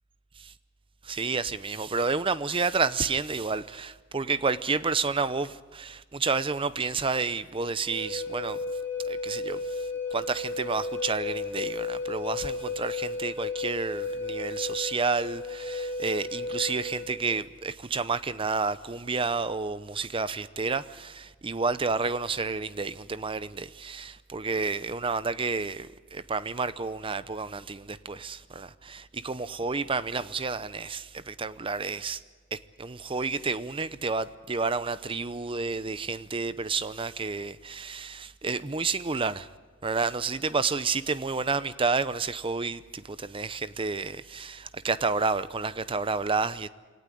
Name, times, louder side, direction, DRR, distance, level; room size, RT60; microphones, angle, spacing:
voice 1, 1.0-8.6 9.0-9.8 10.1-32.2 32.5-39.5 39.8-46.7, right 4 dB, 25° right, 0.7 m, -30 dB
Wind instrument woodwind instrument, 7.8-17.1, left 3 dB, 10° left, 6.0 m, -34 dB
23.5 x 18.0 x 9.9 m
head